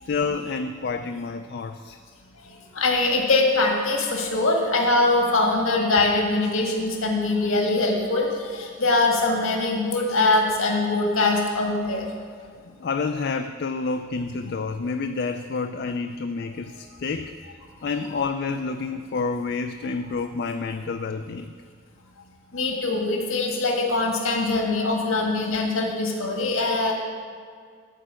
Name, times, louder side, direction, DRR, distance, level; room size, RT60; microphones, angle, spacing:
voice 1, 0.1-2.0 12.6-17.3 17.8-21.5, left 4 dB, 50° left, 7 dB, 0.4 m, -29 dB
voice 2, 2.7-12.0 22.5-26.9, left 2 dB, 80° left, 1 dB, 1.7 m, -22 dB
13.0 x 4.7 x 7.5 m, 2.1 s
head